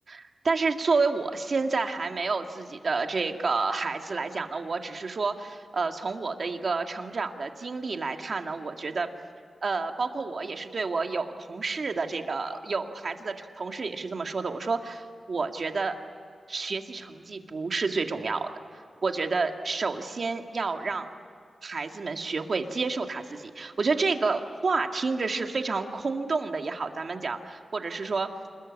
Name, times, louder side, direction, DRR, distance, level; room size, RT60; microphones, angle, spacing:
voice 1, 0.1-9.1 9.6-15.9 16.5-18.5 19.0-21.1 21.6-28.3, right 4 dB, 55° right, 5 dB, 2.0 m, -29 dB
27.5 x 21.5 x 9.6 m, 2.3 s
wide cardioid pair, 90°, 0 cm